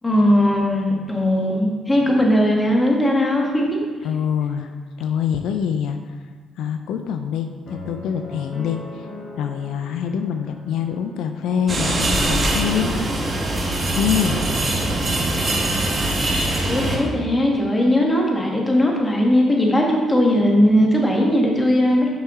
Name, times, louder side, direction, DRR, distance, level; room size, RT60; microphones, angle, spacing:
voice 1, 0.0-3.8 16.6-22.1, equal, 15° left, -1 dB, 1.3 m, -18 dB
voice 2, 4.0-6.1 6.6-9.1 9.4-13.4 13.9-14.4, left 8 dB, 85° left, 7 dB, 0.3 m, -25 dB
sound 1, 7.7-11.8, left 2 dB, 45° left, 1.7 m, -39 dB
sound 2, 11.7-17.0, right 1 dB, 35° right, 1.3 m, -22 dB
6.2 x 5.6 x 3.6 m, 1.5 s
cardioid pair, 90°, 0 cm